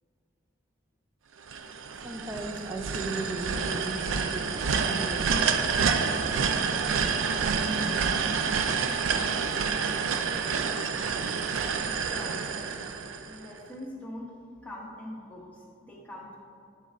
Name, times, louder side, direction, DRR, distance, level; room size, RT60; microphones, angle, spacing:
sound 1, 1.5-13.6, right 5 dB, 80° right, 0.4 m, -28 dB
voice 1, 2.0-5.3, right 2 dB, 15° right, 2 dB, 0.4 m, -37 dB
voice 2, 11.8-12.5 13.2-14.3 14.6-16.4, left 1 dB, 5° left, -5 dB, 0.9 m, -43 dB
10.5 x 4.1 x 2.5 m, 2.5 s
head